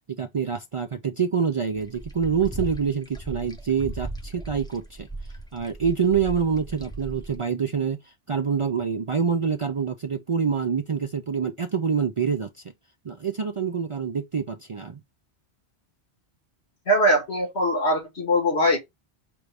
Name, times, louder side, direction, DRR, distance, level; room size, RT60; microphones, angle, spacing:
voice 1, 0.1-5.1 5.5-12.5 13.0-15.0, right 6 dB, 50° right, 0.4 m, -26 dB
sound 1, 1.8-7.4, right 2 dB, 5° left, 0.5 m, -37 dB
voice 2, 16.9-18.8, equal, 85° left, 2.2 m, -21 dB
5.2 x 2.6 x 3.3 m
omnidirectional pair, 1.1 m